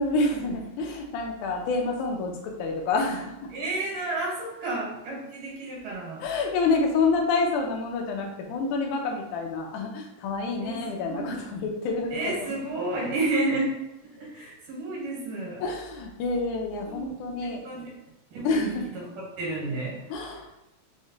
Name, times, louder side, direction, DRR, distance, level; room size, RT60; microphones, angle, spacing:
voice 1, 0.0-3.5 6.2-12.4 15.6-17.8 18.4-18.9 20.1-20.6, left 3 dB, 80° left, 1 dB, 2.0 m, -28 dB
voice 2, 3.5-6.3 10.6-10.8 11.1-11.4 12.1-13.7 14.1-15.6 16.8-17.1 17.4-17.8 18.3-20.0, right 2 dB, 90° right, -3 dB, 2.7 m, -31 dB
6.0 x 2.1 x 2.7 m, 0.92 s
omnidirectional pair, 3.5 m